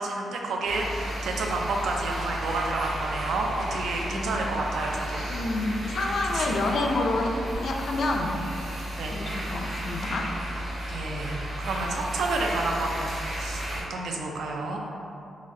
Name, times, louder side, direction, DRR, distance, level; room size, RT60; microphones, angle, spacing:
voice 1, 0.0-5.2 6.3-6.6 9.0-9.2 10.5-10.6 10.9-13.6 13.9-14.8, right 2 dB, 80° right, 0 dB, 0.4 m, -30 dB
sound 1, 0.7-13.8, equal, 60° right, 1.4 m, -34 dB
voice 2, 5.3-8.3 9.1-10.3, left 2 dB, 55° left, 2 dB, 0.3 m, -28 dB
3.9 x 3.0 x 2.6 m, 2.6 s
wide cardioid pair, 165°, 0 cm